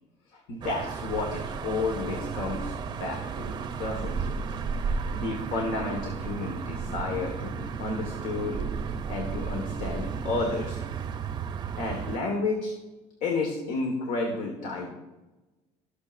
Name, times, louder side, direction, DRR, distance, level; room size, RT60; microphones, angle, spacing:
voice 1, 0.3-4.3 5.1-8.6 9.1-10.8 11.8-12.7 13.2-14.9, left 3 dB, 70° left, 2 dB, 1.6 m, -31 dB
sound 1, 0.6-12.2, right 5 dB, 35° right, 0.6 m, -33 dB
18.0 x 6.7 x 2.6 m, 1.1 s
cardioid pair, 155°, 13 cm